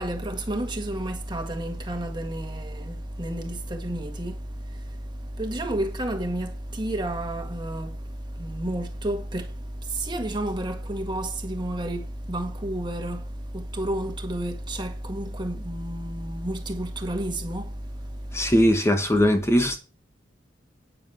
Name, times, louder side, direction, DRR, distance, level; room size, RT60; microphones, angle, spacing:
voice 1, 0.0-18.6, right 1 dB, 25° right, 1.9 m, -31 dB
voice 2, 18.3-19.8, equal, 15° left, 1.5 m, -20 dB
9.6 x 7.3 x 5.8 m
head